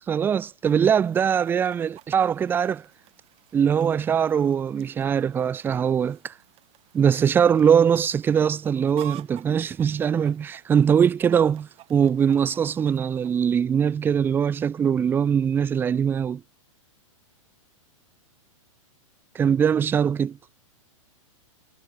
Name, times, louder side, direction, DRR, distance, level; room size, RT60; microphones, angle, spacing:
voice 1, 0.1-2.8 3.5-6.3 6.9-16.4 19.4-20.4, right 7 dB, 10° right, 0.4 m, -22 dB
Chicken rooster, 0.7-13.6, right 18 dB, 35° right, 6.4 m, -50 dB
hypercardioid pair, 130°, 17 cm